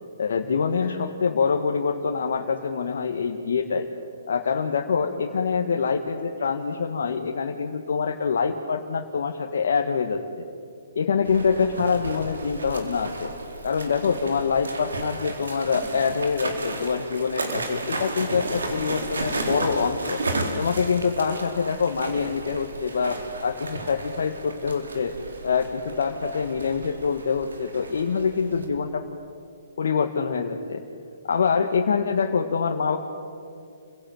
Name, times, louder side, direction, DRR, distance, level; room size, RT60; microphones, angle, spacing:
voice 1, 0.2-3.9 4.3-10.5 10.9-13.3 13.6-20.2 20.6-25.1 25.4-29.0 29.8-30.8 31.2-33.0, left 5 dB, 65° left, 2 dB, 1.7 m, -25 dB
sound 1, 11.2-28.7, right 2 dB, 75° right, 4.1 m, -33 dB
28.5 x 17.0 x 9.1 m, 2.4 s
figure-of-eight pair, 130°, 0 cm